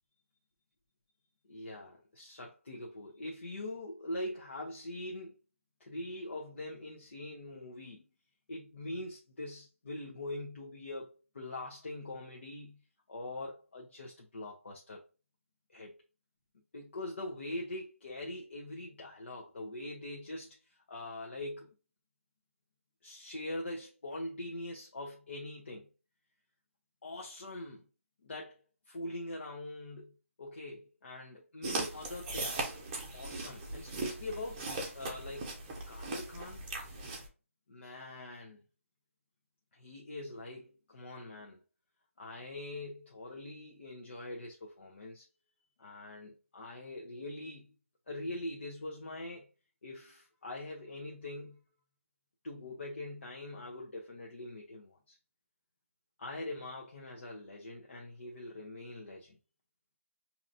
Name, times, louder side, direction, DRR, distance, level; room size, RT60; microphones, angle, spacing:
voice 1, 1.5-5.4 5.8-8.0 8.5-12.8 13.1-15.0 15.7-15.9 16.7-21.7 23.0-25.9 27.0-27.9 28.2-28.6 28.9-32.7 33.1-35.5 35.9-36.6 37.7-38.6 39.7-41.6 42.2-45.3 45.8-47.7 48.1-49.5 49.8-51.6 52.4-55.2 56.2-59.4, left 1 dB, 55° left, 1.1 m, -43 dB
sound 1, 31.6-37.3, right 2 dB, 15° right, 0.8 m, -39 dB
4.9 x 2.9 x 2.6 m
figure-of-eight pair, 165°, 8 cm